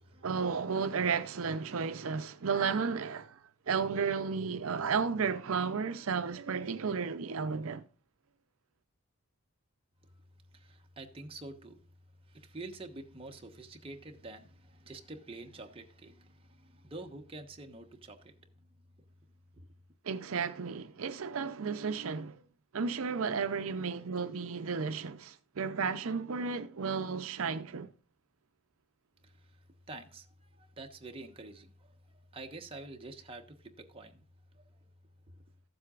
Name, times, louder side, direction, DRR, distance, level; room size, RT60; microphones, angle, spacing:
voice 1, 0.2-7.8 20.0-22.4 22.7-27.9, right 5 dB, 70° right, 0.6 m, -33 dB
voice 2, 10.5-11.8 12.3-18.5 29.2-29.6 29.9-31.9 32.3-34.2 34.5-34.9 35.2-35.3, right 2 dB, 25° right, 1.1 m, -47 dB
14.5 x 7.8 x 2.4 m
head